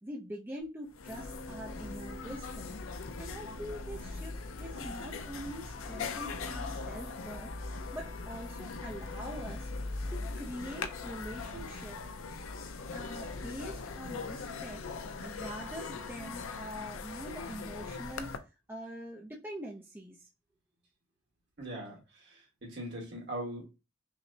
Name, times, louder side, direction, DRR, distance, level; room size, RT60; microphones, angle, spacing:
voice 1, 0.0-2.8 3.2-9.7 10.1-12.0 12.4-12.5 12.9-14.8 15.2-18.4 18.7-20.3, equal, 10° right, 0.5 m, -44 dB
sound 1, 0.6-0.7 0.9-18.4, left 3 dB, 75° left, 0.5 m, -40 dB
voice 2, 21.6-22.0 22.6-23.7, right 1 dB, 55° right, 1.4 m, -39 dB
5.6 x 2.1 x 2.7 m
head